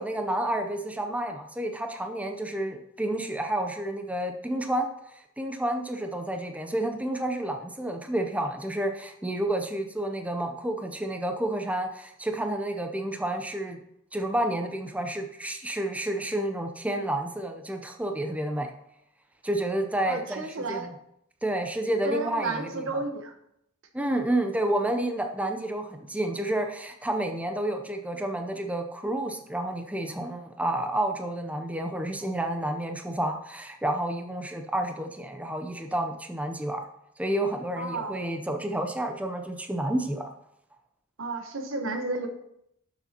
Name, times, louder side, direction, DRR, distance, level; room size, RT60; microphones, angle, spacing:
voice 1, 0.0-13.8 14.1-18.7 19.4-20.9 21.4-23.0 23.9-36.9 37.2-40.3, right 1 dB, 5° right, 4 dB, 0.6 m, -30 dB
voice 2, 20.1-20.9 22.0-23.3 37.8-38.2 41.2-42.3, right 2 dB, 65° right, 6 dB, 1.1 m, -32 dB
11.5 x 6.9 x 2.9 m, 0.77 s
head